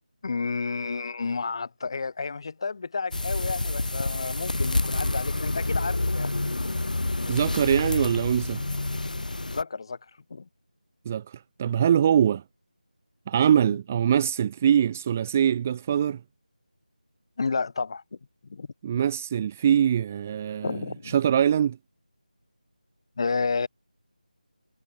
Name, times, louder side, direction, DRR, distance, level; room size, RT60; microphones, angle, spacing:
voice 1, 0.2-6.3 9.5-10.0 10.3-10.5 17.4-18.0 18.5-18.7 20.6-21.1 23.2-23.7, left 4 dB, 35° left, 2.4 m, -31 dB
sound 1, 3.1-9.6, left 2 dB, 70° left, 0.7 m, -28 dB
voice 2, 7.3-8.6 11.1-12.4 13.3-16.2 18.8-21.8, right 9 dB, 15° right, 0.5 m, -23 dB
figure-of-eight pair, 165°, 5 cm